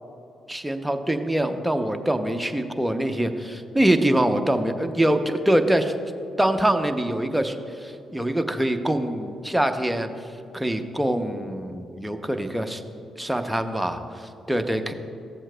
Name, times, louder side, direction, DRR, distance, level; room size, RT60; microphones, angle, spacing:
voice 1, 0.5-5.9 6.4-10.1 10.5-12.8 13.2-14.9, right 1 dB, 5° right, 6 dB, 0.7 m, -24 dB
14.5 x 7.4 x 2.3 m, 2.7 s
supercardioid pair, 50°, 0 cm